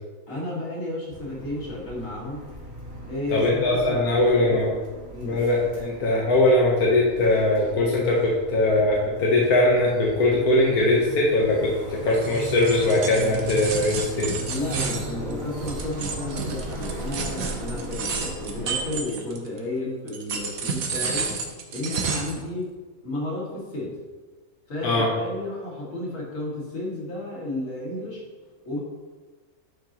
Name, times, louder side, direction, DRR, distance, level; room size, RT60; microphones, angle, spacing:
voice 1, 0.3-2.4 3.0-4.6 5.1-5.4 14.5-21.3 21.7-22.7 23.0-24.0 24.7-28.2 28.7-28.8, left 2 dB, 60° left, -5 dB, 2.6 m, -32 dB
sound 1, 1.1-18.9, right 1 dB, 45° right, 2.2 m, -37 dB
voice 2, 3.3-4.7 5.2-14.3 24.8-25.1, left 2 dB, 90° left, -3 dB, 1.6 m, -21 dB
sound 2, 12.1-19.6 20.1-22.4, right 5 dB, 70° right, 1.3 m, -31 dB
10.5 x 6.0 x 3.0 m, 1.4 s
omnidirectional pair, 1.5 m